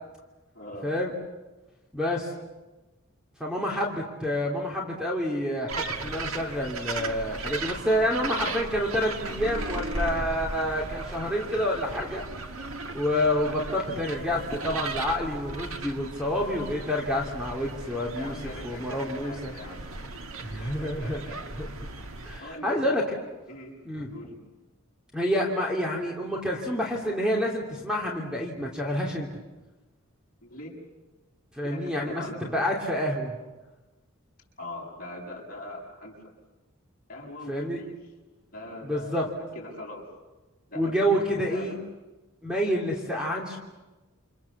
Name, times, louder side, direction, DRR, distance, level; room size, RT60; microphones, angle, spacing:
voice 1, 0.5-0.9 7.9-8.5 18.2-19.8 20.6-21.5 22.4-23.1 23.5-23.7 24.1-24.3 30.4-30.8 31.6-32.4 34.6-36.2 37.1-38.0 38.5-40.1 40.7-41.8, left 1 dB, 45° left, -1 dB, 7.1 m, -42 dB
voice 2, 1.9-2.3 3.4-12.2 12.9-18.4 18.6-19.5 20.4-21.2 21.5-21.7 22.2-23.2 23.8-24.1 25.1-29.3 31.5-33.4 37.5-37.8 38.8-39.3 40.7-41.7 42.4-43.6, equal, 5° right, -1 dB, 2.9 m, -28 dB
sound 1, 5.7-22.4, right 3 dB, 75° right, 1.7 m, -36 dB
28.5 x 27.0 x 7.2 m, 1.1 s
head